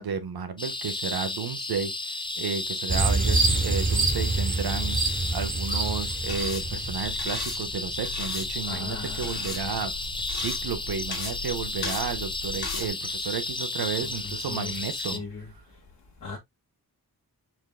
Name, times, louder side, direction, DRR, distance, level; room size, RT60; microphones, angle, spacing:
voice 1, 0.0-15.2, right 6 dB, 75° right, 0.8 m, -33 dB
sound 1, 0.6-15.2, left 2 dB, 15° left, 0.4 m, -33 dB
sound 2, 2.9-7.6, right 3 dB, 20° right, 1.0 m, -26 dB
voice 2, 3.3-3.7 8.6-10.0 14.0-15.5 16.2-16.4, left 4 dB, 60° left, 1.4 m, -40 dB
sound 3, 6.3-12.9, left 4 dB, 90° left, 1.4 m, -37 dB
4.4 x 3.6 x 2.3 m
wide cardioid pair, 90°, 38 cm